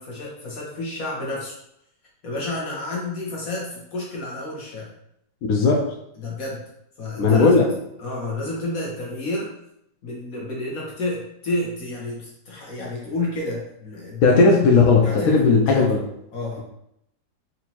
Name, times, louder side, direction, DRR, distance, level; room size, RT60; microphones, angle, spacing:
voice 1, 0.0-1.5 2.2-4.9 6.2-6.6 7.0-7.5 8.0-9.5 10.0-14.2 15.0-15.9 16.3-16.6, left 2 dB, 55° left, -3 dB, 1.5 m, -30 dB
voice 2, 5.5-5.8 7.2-7.7 14.2-16.0, left 4 dB, 70° left, -1 dB, 0.8 m, -16 dB
4.2 x 2.8 x 2.9 m, 0.76 s
omnidirectional pair, 2.0 m